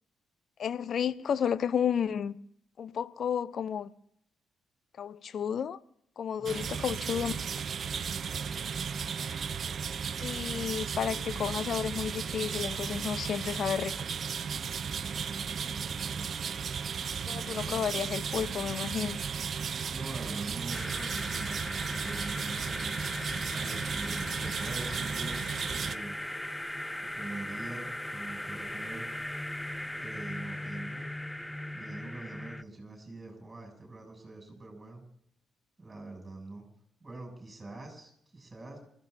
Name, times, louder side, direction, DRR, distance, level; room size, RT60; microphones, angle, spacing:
voice 1, 0.6-2.4 2.8-3.9 5.0-5.8 6.2-7.3 10.2-14.0 17.3-19.2, left 8 dB, 55° left, 0.7 m, -32 dB
voice 2, 6.4-7.0 8.5-8.9 14.9-16.3 19.9-23.0 23.5-26.2 27.0-29.1 30.0-31.1 31.7-35.0 35.8-36.6 37.0-38.8, right 2 dB, 25° right, 7.9 m, -44 dB
sound 1, 6.5-26.0, right 6 dB, 50° right, 0.6 m, -35 dB
sound 2, 20.7-32.6, left 1 dB, 10° left, 0.6 m, -38 dB
29.0 x 15.0 x 2.8 m
hypercardioid pair, 45°, 0 cm